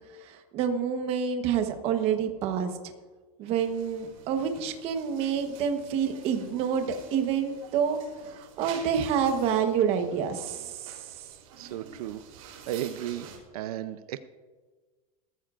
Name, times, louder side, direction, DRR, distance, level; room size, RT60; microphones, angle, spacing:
voice 1, 0.2-2.7 3.4-8.0 8.2-10.9, right 7 dB, 30° right, 6 dB, 1.1 m, -28 dB
sound 1, 3.6-13.4, right 7 dB, 65° right, 3.5 m, -49 dB
voice 2, 11.6-12.2 12.7-14.2, right 12 dB, 80° right, 12 dB, 0.7 m, -34 dB
18.5 x 14.0 x 2.5 m, 1.4 s
supercardioid pair, 170°, 19 cm